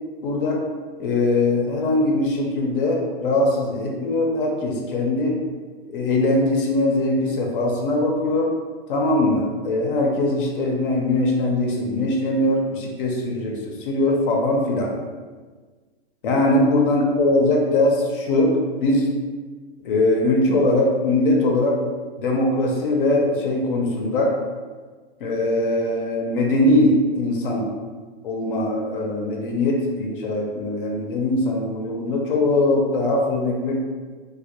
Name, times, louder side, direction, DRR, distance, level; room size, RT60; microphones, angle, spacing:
voice 1, 0.2-0.6 1.0-5.3 5.9-8.5 8.9-13.5 13.8-14.9 16.2-18.5 18.8-19.1 19.8-21.8 22.2-24.3 25.2-27.7 28.2-33.8, left 2 dB, 60° left, -1 dB, 0.5 m, -21 dB
2.1 x 2.1 x 2.7 m, 1.4 s
hypercardioid pair, 145°, 30 cm